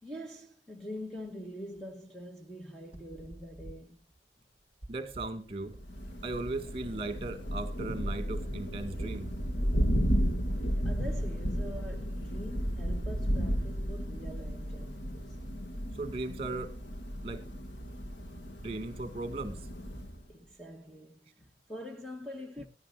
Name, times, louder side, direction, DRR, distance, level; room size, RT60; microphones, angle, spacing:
voice 1, 0.0-4.0 10.8-15.4 20.3-22.7, equal, 5° left, 1.3 m, -44 dB
sound 1, 1.0-1.4 1.7-1.9 2.8-7.3 7.7-7.8 8.7-8.8 9.0-15.4 16.1-16.5 18.6-19.8, right 1 dB, 35° left, 5.7 m, -55 dB
voice 2, 4.9-5.8 6.2-9.3 16.0-16.7 17.2-17.5 18.6-19.6, right 2 dB, 35° right, 2.3 m, -37 dB
Thunder, 5.7-20.3, equal, 85° left, 2.2 m, -33 dB
17.0 x 14.0 x 2.6 m
head